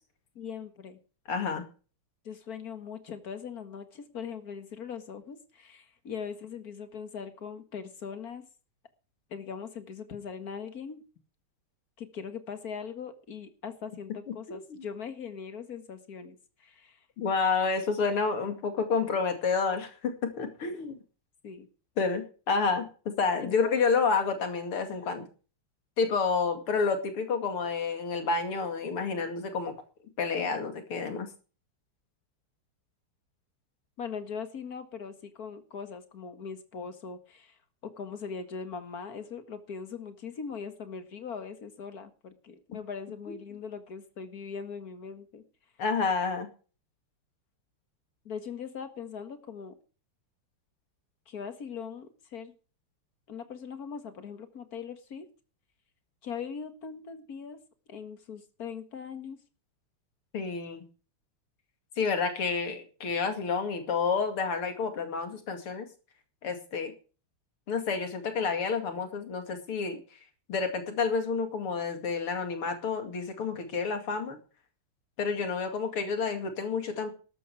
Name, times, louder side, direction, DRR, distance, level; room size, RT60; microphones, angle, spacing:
voice 1, 0.4-1.0 2.2-8.4 9.3-11.0 12.0-17.1 21.4-21.7 23.4-23.8 34.0-45.4 48.3-49.8 51.3-52.5 53.3-55.3 56.2-57.6 57.9-59.4, left 6 dB, 45° left, 9 dB, 2.1 m, -40 dB
voice 2, 1.3-1.6 14.3-14.6 17.2-21.0 22.0-25.2 26.0-29.7 30.2-31.3 45.8-46.5 60.3-60.8 62.0-65.9 66.4-66.9 67.7-70.2 70.5-74.4 75.2-77.1, left 5 dB, 85° left, 6 dB, 3.3 m, -29 dB
13.0 x 11.5 x 4.9 m, 0.37 s
omnidirectional pair, 2.4 m